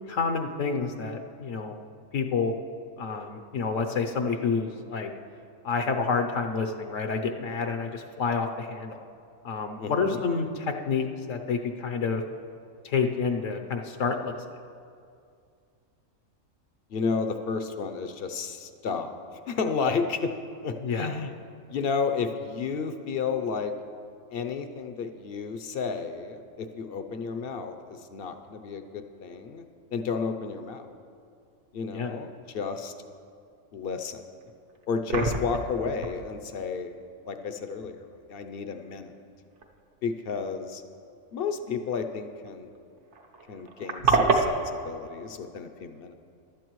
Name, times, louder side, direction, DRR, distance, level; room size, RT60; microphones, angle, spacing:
voice 1, 0.1-1.7 2.1-2.5 3.0-5.1 5.6-9.0 9.4-12.2 12.8-14.3 20.8-21.1 31.9-32.1, left 5 dB, 75° left, 5 dB, 1.1 m, -28 dB
voice 2, 9.8-10.2 16.9-19.2 19.5-21.3 21.7-23.8 24.3-29.6 29.9-30.8 31.7-32.9 33.7-34.2 34.9-36.9 37.3-39.1 40.0-40.8 41.3-42.7 43.5-46.1, left 5 dB, 55° left, 8 dB, 0.7 m, -32 dB
sound 1, 34.4-34.5 34.8-35.7 36.0-36.1 38.6-38.8 39.6-39.7 39.9-40.0 42.5-42.6 42.8-42.9 43.1-44.5, right 4 dB, 60° right, 1.2 m, -25 dB
15.5 x 12.0 x 3.1 m, 2.4 s
omnidirectional pair, 1.4 m